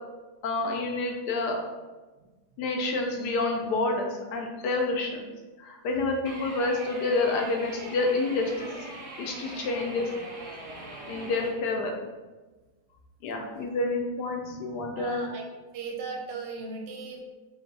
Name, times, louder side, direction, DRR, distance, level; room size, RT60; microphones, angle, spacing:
voice 1, 0.4-1.6 2.6-5.2 5.6-8.7 9.2-10.1 11.1-11.9 13.2-15.2, left 3 dB, 75° left, 2 dB, 1.1 m, -28 dB
sound 1, 6.3-11.5, right 2 dB, 55° right, 0.9 m, -41 dB
voice 2, 14.9-15.4 15.7-17.2, right 4 dB, 80° right, 2 dB, 1.3 m, -37 dB
3.9 x 2.2 x 3.8 m, 1.2 s
omnidirectional pair, 1.9 m